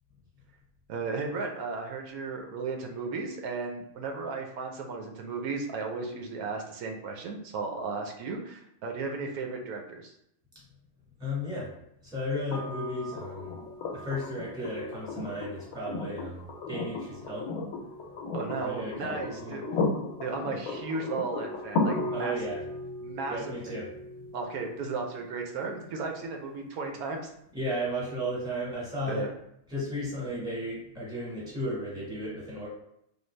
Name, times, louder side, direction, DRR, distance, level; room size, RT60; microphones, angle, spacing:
voice 1, 0.9-10.1 18.3-19.6 20.2-22.4 23.0-23.6 24.3-27.3 29.1-29.3, right 4 dB, 85° right, 2 dB, 1.1 m, -35 dB
voice 2, 11.2-11.7 12.0-13.5 13.9-17.5 18.6-19.6 22.1-22.6 23.3-23.9 27.5-29.3 29.7-32.7, equal, 5° right, -6 dB, 1.1 m, -34 dB
sound 1, 12.5-26.5 28.2-28.3, left 3 dB, 85° left, 1.1 m, -35 dB
3.2 x 2.3 x 3.1 m, 0.76 s
omnidirectional pair, 1.5 m